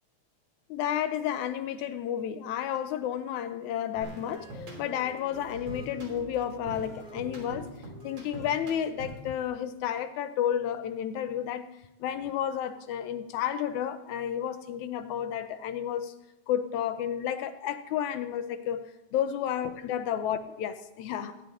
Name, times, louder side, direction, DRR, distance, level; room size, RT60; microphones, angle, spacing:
voice 1, 0.7-7.7 8.0-11.7 12.0-16.1 16.5-18.8 19.1-21.4, left 10 dB, 80° left, 2.1 m, -31 dB
sound 1, 4.0-9.3, right 1 dB, 60° right, 4.5 m, -43 dB
16.0 x 10.0 x 3.8 m
omnidirectional pair, 3.4 m